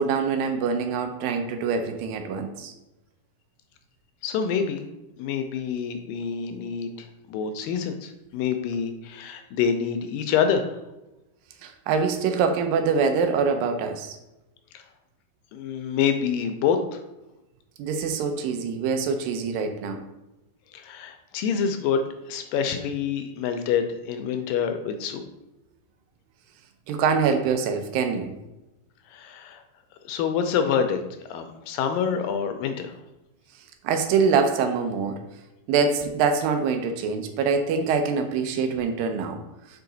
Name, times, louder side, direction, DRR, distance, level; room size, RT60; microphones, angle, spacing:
voice 1, 0.0-2.7 11.6-14.2 17.8-20.0 26.9-28.3 33.8-35.2 35.7-39.4, right 5 dB, 80° right, 6 dB, 2.4 m, -24 dB
voice 2, 4.2-4.8 5.2-10.7 15.5-17.0 20.7-25.2 29.1-29.6 30.1-31.0 31.3-32.9, left 7 dB, 80° left, 7 dB, 2.2 m, -27 dB
5.7 x 4.7 x 3.9 m, 0.96 s
omnidirectional pair, 4.1 m